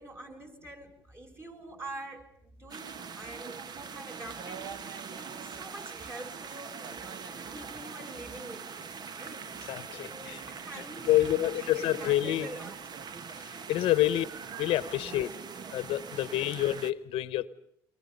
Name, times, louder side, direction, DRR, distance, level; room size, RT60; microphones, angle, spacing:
voice 1, 0.0-6.8 7.3-12.8 14.2-14.3 15.0-15.1 15.5-15.6, right 1 dB, 25° right, 3 dB, 5.8 m, -46 dB
sound 1, 2.7-16.9, right 6 dB, 45° right, 1.2 m, -42 dB
voice 2, 9.7-10.4 11.1-12.5 13.4-14.3 14.6-15.3 15.7-17.5, left 14 dB, 75° left, 16 dB, 1.0 m, -28 dB
29.5 x 24.5 x 5.4 m, 0.71 s
cardioid pair, 95°, 9 cm